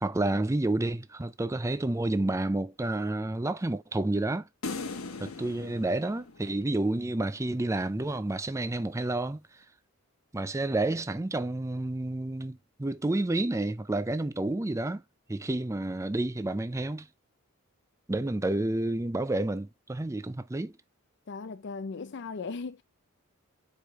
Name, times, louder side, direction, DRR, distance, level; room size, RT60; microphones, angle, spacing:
voice 1, 0.0-4.5 5.2-9.4 10.3-15.0 15.3-17.1 18.1-20.7, right 2 dB, 15° right, 0.4 m, -30 dB
sound 1, 4.6-7.0, left 3 dB, 75° left, 1.1 m, -39 dB
voice 2, 21.3-22.8, left 4 dB, 55° left, 0.5 m, -38 dB
6.5 x 4.9 x 3.0 m
head